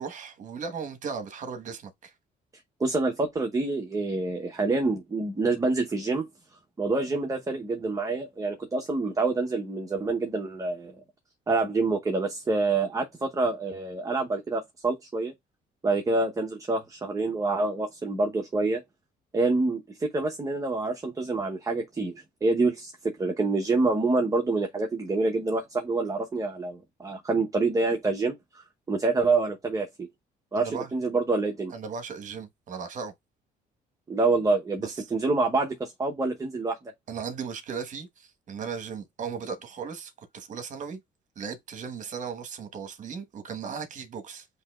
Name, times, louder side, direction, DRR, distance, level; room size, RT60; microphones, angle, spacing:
voice 1, 0.0-2.1 30.5-30.9 31.7-33.1 34.8-34.9 37.1-41.0 41.4-44.5, right 6 dB, 50° right, 1.2 m, -37 dB
voice 2, 2.8-6.3 6.8-10.9 11.5-15.3 15.8-18.8 19.3-28.4 28.9-30.1 30.5-31.7 34.1-36.8, right 3 dB, 20° right, 0.8 m, -27 dB
8.1 x 2.8 x 2.3 m
cardioid pair, 110°, 17 cm